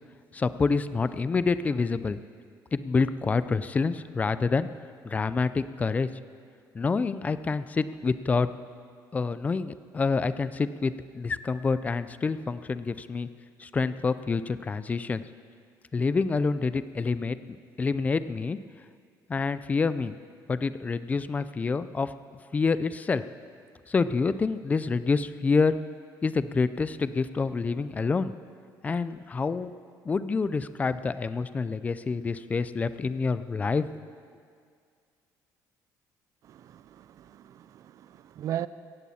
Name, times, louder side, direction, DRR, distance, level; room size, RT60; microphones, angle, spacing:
voice 1, 0.3-2.2 2.7-4.7 5.0-6.1 6.7-8.5 9.1-13.3 13.6-15.2 15.9-17.4 17.8-18.6 19.3-20.1 20.5-22.1 22.5-23.2 23.9-25.8 26.2-28.3 28.8-29.7 30.1-33.9, left 4 dB, 20° left, 0.4 m, -27 dB
voice 2, 36.4-38.7, right 11 dB, 45° right, 0.4 m, -37 dB
16.5 x 15.5 x 4.3 m
cardioid pair, 145°, 8 cm